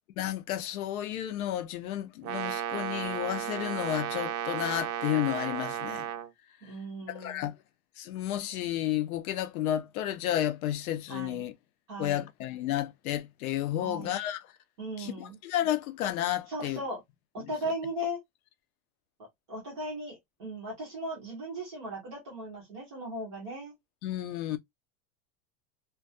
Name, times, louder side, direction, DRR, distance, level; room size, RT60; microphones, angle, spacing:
voice 1, 0.2-6.1 6.6-6.7 7.1-7.5 8.0-11.5 12.0-14.5 15.0-16.8 17.4-17.5 24.0-24.6, left 12 dB, 65° left, 0.6 m, -32 dB
Brass instrument, 2.2-6.3, right 10 dB, 80° right, 0.6 m, -34 dB
voice 2, 6.6-7.5 11.1-11.4 11.9-12.2 13.8-14.1 14.8-15.4 16.5-17.0 17.3-18.2 19.5-23.8, equal, 20° right, 0.4 m, -37 dB
2.3 x 2.2 x 2.4 m
supercardioid pair, 180°, 47 cm